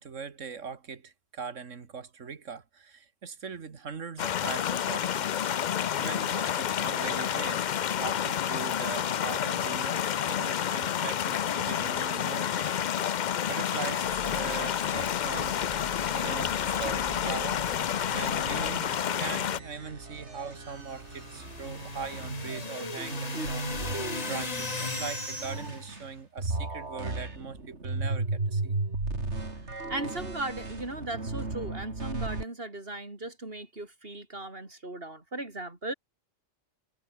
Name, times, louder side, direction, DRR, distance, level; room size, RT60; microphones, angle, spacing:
voice 1, 0.0-5.4 6.0-15.5 16.1-17.6 18.1-28.8, right 6 dB, 80° right, 2.0 m, -41 dB
sound 1, 4.2-19.6, left 9 dB, 55° left, 0.5 m, -29 dB
sound 2, 13.8-26.1 26.4-32.4, right 3 dB, 65° right, 3.9 m, -36 dB
sound 3, 20.9-25.8, left 4 dB, 35° left, 1.2 m, -38 dB
voice 2, 29.9-35.9, right 2 dB, 50° right, 4.3 m, -37 dB
omnidirectional pair, 1.3 m